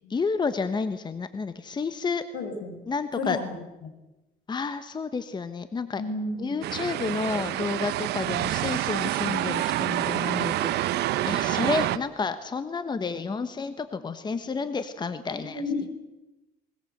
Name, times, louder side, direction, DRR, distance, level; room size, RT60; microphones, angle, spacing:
voice 1, 0.1-2.2 2.9-3.4 4.5-6.0 6.4-15.6, left 4 dB, 25° left, 11 dB, 1.2 m, -30 dB
voice 2, 2.3-2.8 3.2-3.9 6.0-6.5 15.4-15.9, left 3 dB, 75° left, 5 dB, 5.9 m, -32 dB
sound 1, 6.6-12.0, right 14 dB, 80° right, 1.0 m, -27 dB
21.0 x 20.5 x 8.0 m, 1.0 s
cardioid pair, 110°, 17 cm